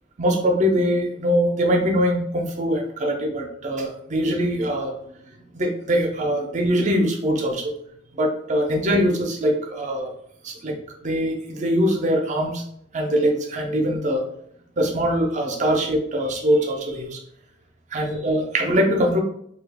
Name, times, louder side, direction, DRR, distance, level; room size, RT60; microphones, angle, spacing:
voice 1, 0.2-4.9 5.5-7.7 8.1-10.1 10.4-12.6 12.9-14.2 14.8-17.2 17.9-19.2, equal, 40° right, 3 dB, 0.5 m, -22 dB
2.8 x 2.3 x 3.5 m, 0.70 s
head